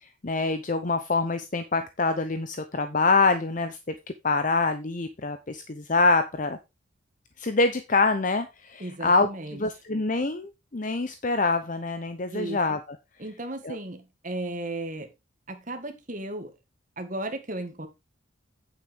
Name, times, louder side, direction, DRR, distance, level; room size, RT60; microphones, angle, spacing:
voice 1, 0.0-3.8 4.2-6.6 7.4-9.3 9.6-12.8 13.6-13.8, left 3 dB, 40° left, 0.7 m, -25 dB
voice 2, 8.8-9.6 12.3-12.6 13.2-15.1 15.5-16.5 17.0-17.9, right 1 dB, 40° right, 1.8 m, -35 dB
9.1 x 7.7 x 3.6 m
head